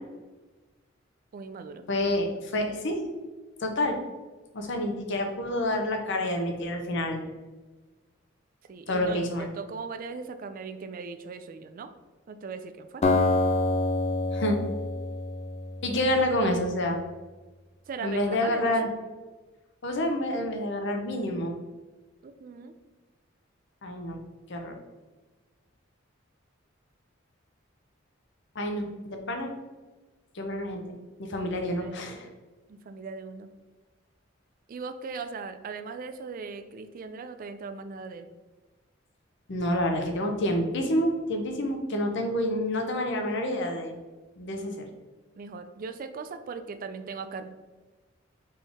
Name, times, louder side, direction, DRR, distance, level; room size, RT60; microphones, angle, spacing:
voice 1, 1.3-1.9 8.7-11.9 12.3-13.0 17.9-18.9 22.2-22.7 31.6-32.3 32.7-33.5 34.7-38.3 45.4-47.5, right 4 dB, 45° right, 9 dB, 0.3 m, -39 dB
voice 2, 1.9-3.1 3.6-4.0 4.5-7.2 8.9-9.5 14.3-14.6 15.8-17.0 18.0-18.9 19.8-21.5 23.8-24.2 24.5-24.7 28.6-29.5 30.3-30.8 31.2-32.3 39.5-44.0 44.4-44.8, left 1 dB, 65° left, 4 dB, 0.8 m, -28 dB
Acoustic guitar, 13.0-16.2, left 2 dB, 35° left, 0.4 m, -26 dB
4.1 x 3.7 x 3.4 m, 1.2 s
head